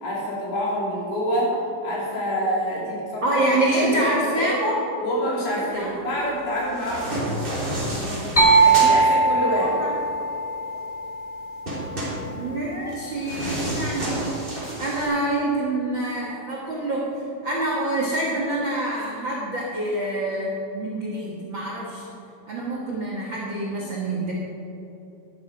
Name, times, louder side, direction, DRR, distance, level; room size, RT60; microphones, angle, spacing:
voice 1, 0.0-1.5 1.8-3.4 3.7-4.5 5.0-7.3 8.6-9.7, equal, 65° left, -6 dB, 5.1 m, -27 dB
voice 2, 3.2-4.8 5.5-6.4 9.2-9.9 12.3-14.2 14.8-22.0 22.5-24.3, right 1 dB, 70° right, -4 dB, 1.1 m, -26 dB
sound 1, 6.5-9.0 11.7-15.1, right 1 dB, 15° right, 2.6 m, -30 dB
sound 2, 8.4-12.0, right 4 dB, 15° left, 1.4 m, -20 dB
12.0 x 12.0 x 4.9 m, 2.9 s
omnidirectional pair, 5.0 m